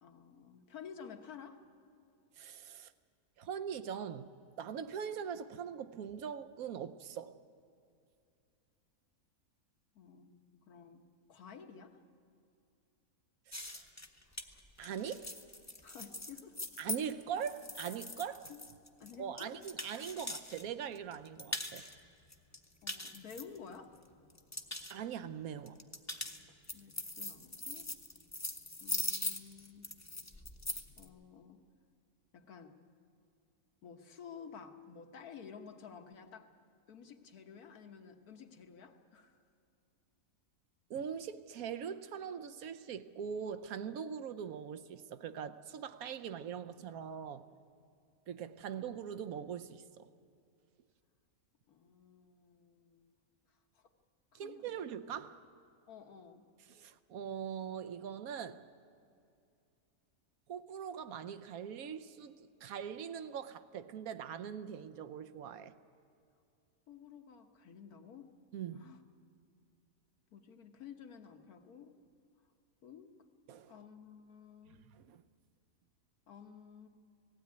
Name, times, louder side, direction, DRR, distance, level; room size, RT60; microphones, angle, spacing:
voice 1, 0.0-1.6 9.9-12.0 15.8-16.6 18.5-18.6 19.0-19.5 22.8-24.0 26.7-27.9 28.8-29.9 31.0-31.6 32.3-32.8 33.8-36.5 36.9-39.4 48.6-48.7 51.7-53.1 53.7-53.9 54.3-54.7 55.9-56.5 66.9-68.3 68.8-69.0 70.3-71.9 72.8-73.1 73.7-74.8 76.3-76.9, left 7 dB, 75° left, 1.7 m, -52 dB
voice 2, 2.4-2.9 3.4-4.3 4.6-7.4 13.7-13.9 14.8-15.3 16.8-18.5 19.2-21.8 24.9-25.8 40.9-47.4 48.3-50.1 54.3-55.4 56.7-58.6 60.5-65.7 68.5-68.9 73.5-73.7 74.9-75.2, right 8 dB, 70° right, 1.2 m, -42 dB
sound 1, 13.5-20.6 20.9-21.9 22.3-24.0 24.3-24.9 25.7-31.0, left 1 dB, 15° left, 0.8 m, -41 dB
18.5 x 16.0 x 9.5 m
omnidirectional pair, 1.6 m